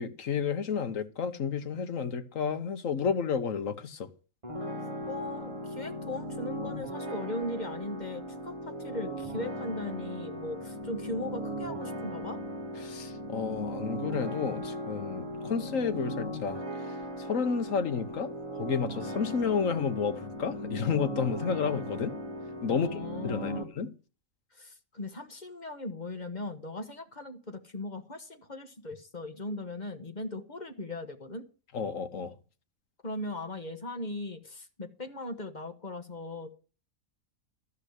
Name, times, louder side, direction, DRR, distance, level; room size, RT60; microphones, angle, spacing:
voice 1, 0.0-4.1 12.8-18.3 18.6-22.1 22.6-23.9 31.7-32.3, left 6 dB, 70° left, 1.5 m, -31 dB
sound 1, 4.4-23.6, equal, 25° right, 1.8 m, -38 dB
voice 2, 5.1-12.4 22.7-23.7 24.5-31.5 33.0-36.5, left 2 dB, 35° left, 1.4 m, -38 dB
13.5 x 5.6 x 8.1 m
omnidirectional pair, 1.4 m